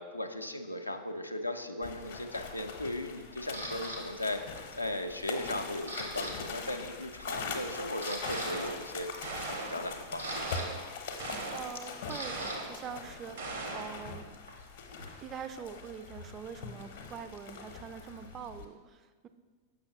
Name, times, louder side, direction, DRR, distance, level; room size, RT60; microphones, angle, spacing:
voice 1, 0.0-4.4 4.8-10.4, left 1 dB, 85° left, 5 dB, 0.4 m, -37 dB
sound 1, 1.8-18.7, left 5 dB, 55° left, 0.7 m, -42 dB
Camera, 3.5-4.0 4.6-4.9 5.3-6.3 6.6-6.8 7.4-7.5 7.9-8.5 9.7-12.6 12.9-15.4, right 1 dB, 90° right, 1.0 m, -43 dB
sound 2, 8.2-8.8 9.2-9.9 10.2-10.9 11.2-11.8 12.2-12.8 13.4-14.0, right 3 dB, 65° right, 0.8 m, -39 dB
voice 2, 11.2-14.3 15.2-19.3, right 7 dB, 30° right, 10 dB, 0.3 m, -44 dB
6.8 x 5.6 x 2.8 m, 1.5 s
figure-of-eight pair, 90°, 0 cm